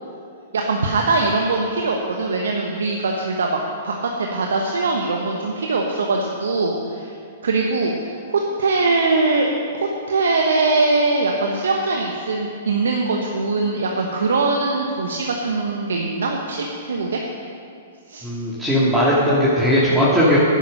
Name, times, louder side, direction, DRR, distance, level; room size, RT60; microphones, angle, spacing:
voice 1, 0.5-3.6 3.8-7.1 7.4-17.2 18.1-18.3, right 3 dB, 70° right, 1 dB, 1.1 m, -22 dB
voice 2, 18.2-20.4, equal, 10° right, -9 dB, 2.4 m, -18 dB
11.0 x 10.0 x 5.4 m, 2.4 s
figure-of-eight pair, 115°, 0 cm